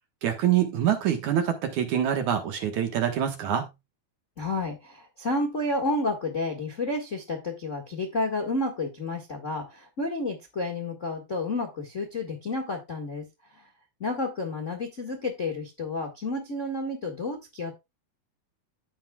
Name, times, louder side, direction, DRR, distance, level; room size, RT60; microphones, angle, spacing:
voice 1, 0.2-3.7, right 10 dB, 60° right, 2.5 m, -25 dB
voice 2, 4.4-13.3 13.5-13.7 14.0-17.7, left 2 dB, 40° left, 1.1 m, -30 dB
15.5 x 5.8 x 2.3 m
omnidirectional pair, 4.2 m